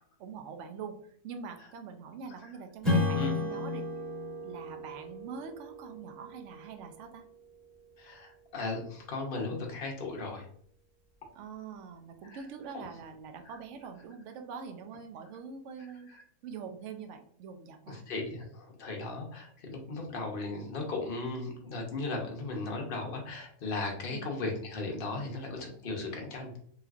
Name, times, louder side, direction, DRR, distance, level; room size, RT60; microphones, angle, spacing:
voice 1, 0.2-3.9 4.4-7.2 11.3-16.1 16.4-18.0 24.1-24.3, right 6 dB, 70° right, 5 dB, 0.7 m, -44 dB
Strum, 2.8-7.8, left 2 dB, ahead, 1.2 m, -34 dB
voice 2, 8.0-10.5 12.2-12.4 12.7-12.9 13.5-13.6 16.1-16.2 17.9-26.6, left 3 dB, 50° left, 1 dB, 0.6 m, -37 dB
3.2 x 3.0 x 2.3 m, 0.63 s
omnidirectional pair, 1.7 m